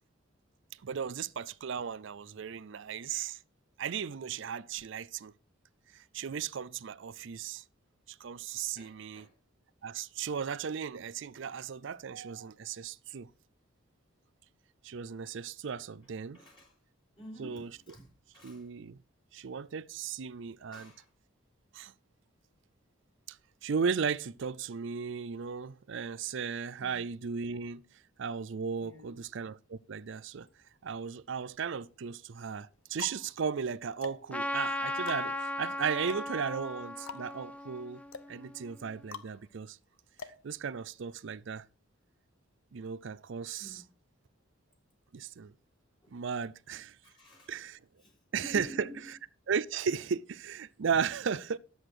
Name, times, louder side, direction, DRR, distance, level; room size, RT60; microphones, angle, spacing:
voice 1, 0.8-3.4 3.8-5.3 5.9-7.6 8.1-9.3 9.8-13.3 14.8-16.4 17.4-17.7 18.4-19.0 19.3-20.9 21.7-21.9 23.3-23.4 23.6-27.8 28.2-30.5 30.8-38.0 38.3-39.8 40.4-41.6 42.7-43.8 45.1-45.5 46.1-47.0 47.5-47.8 48.3-48.7 49.5-51.6, right 6 dB, 60° right, 0.5 m, -36 dB
voice 2, 8.8-9.3 16.3-16.8 17.2-18.7 20.7-21.1 26.8-27.0 28.8-29.2 43.6-43.9 46.0-46.2 47.0-47.5 48.0-49.1, equal, 25° left, 4.7 m, -49 dB
sound 1, 31.0-31.7 32.4-41.2, left 5 dB, 85° left, 0.9 m, -48 dB
Trumpet, 34.3-39.0, left 1 dB, 5° left, 0.7 m, -37 dB
11.0 x 7.9 x 4.9 m
head